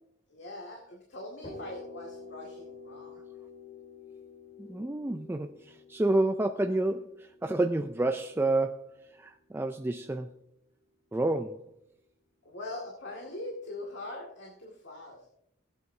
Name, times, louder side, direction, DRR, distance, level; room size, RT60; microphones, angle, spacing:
voice 1, 0.3-3.2 12.4-15.2, left 2 dB, 55° left, -2 dB, 2.1 m, -42 dB
sound 1, 1.4-9.2, left 3 dB, 35° left, 3.4 m, -49 dB
voice 2, 4.6-8.9 9.1-10.3 11.1-11.7, right 2 dB, 10° right, 6 dB, 0.3 m, -29 dB
16.5 x 9.3 x 2.7 m, 0.77 s
head